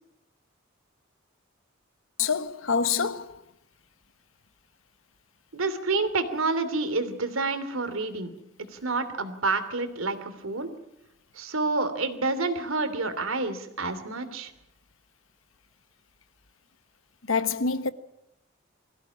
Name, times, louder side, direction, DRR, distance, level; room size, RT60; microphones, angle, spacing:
voice 1, 2.2-3.4 17.3-17.9, left 5 dB, 75° left, 1.1 m, -26 dB
voice 2, 5.5-8.3 8.7-10.7 11.3-14.5, right 3 dB, 85° right, 2.8 m, -28 dB
22.5 x 16.0 x 9.8 m
head